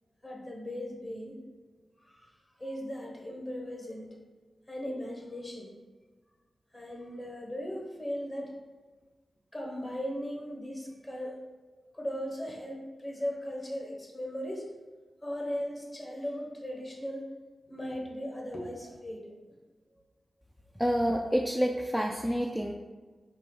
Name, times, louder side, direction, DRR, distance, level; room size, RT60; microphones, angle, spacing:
voice 1, 0.2-1.3 2.0-4.1 4.7-5.7 6.7-8.6 9.5-11.4 11.9-14.7 15.2-17.3 17.7-19.3, equal, 30° left, -1 dB, 1.0 m, -38 dB
voice 2, 20.8-22.7, equal, ahead, 1 dB, 0.3 m, -28 dB
4.3 x 3.0 x 3.8 m, 1.3 s
wide cardioid pair, 75°, 0 cm